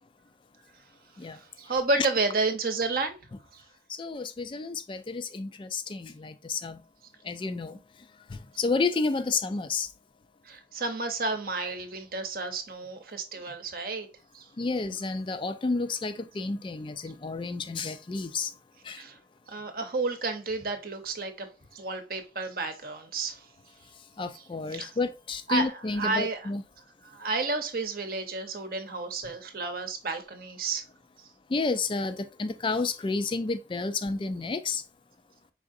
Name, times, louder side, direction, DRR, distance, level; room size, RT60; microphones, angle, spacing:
voice 1, 1.2-3.2 3.5-3.6 10.4-14.1 14.3-14.5 18.9-19.2 19.5-23.5 24.3-24.4 24.7-24.9 25.5-26.5 27.0-30.8, right 3 dB, 55° right, 0.8 m, -31 dB
voice 2, 3.9-6.8 7.2-7.8 8.3-9.9 14.6-18.5 18.8-19.0 24.2-26.6 31.5-34.8, left 3 dB, 30° left, 0.4 m, -30 dB
4.7 x 3.7 x 2.5 m
head